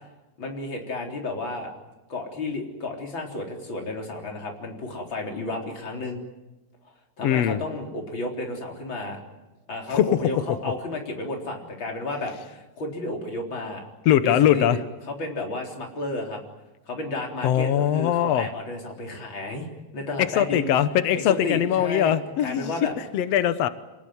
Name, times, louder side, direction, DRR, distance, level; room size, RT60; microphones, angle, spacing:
voice 1, 0.4-1.7 2.1-6.2 7.2-9.2 9.7-13.9 14.2-14.7 15.2-16.4 16.9-19.7 19.9-20.7 21.1-22.2 22.4-22.9, left 2 dB, 30° left, 1 dB, 4.3 m, -32 dB
voice 2, 7.2-7.6 9.9-10.1 14.0-14.8 17.4-18.5 20.2-22.7 23.1-23.7, left 10 dB, 85° left, 11 dB, 1.4 m, -21 dB
27.0 x 19.0 x 9.5 m, 1.0 s
omnidirectional pair, 4.3 m